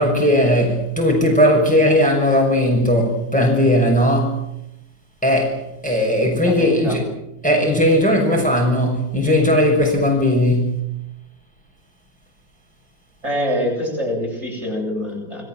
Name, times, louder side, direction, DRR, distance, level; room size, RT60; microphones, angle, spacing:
voice 1, 0.0-4.4 5.2-7.0 7.4-10.8, equal, 5° left, 6.6 m, -17 dB
voice 2, 6.4-7.0 13.2-15.5, equal, 45° right, 8.2 m, -25 dB
28.5 x 21.0 x 7.8 m
omnidirectional pair, 1.7 m